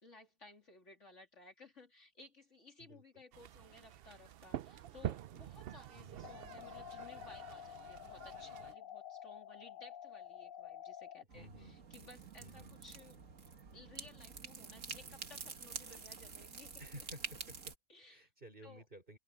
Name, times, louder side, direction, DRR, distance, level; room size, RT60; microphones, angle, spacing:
voice 1, 0.0-13.2 13.7-17.0 17.9-18.3 18.6-18.9, left 3 dB, 50° left, 3.3 m, -58 dB
sound 1, 3.3-8.8, right 11 dB, 75° right, 0.5 m, -47 dB
voice 2, 5.9-6.3 11.3-11.8 12.4-12.7 16.8-17.7 18.1-19.2, equal, 35° right, 5.5 m, -54 dB
sound 2, 6.2-11.2, left 10 dB, 70° left, 1.0 m, -50 dB
sound 3, 11.3-17.7, right 5 dB, 60° right, 2.1 m, -48 dB
open air
omnidirectional pair, 1.6 m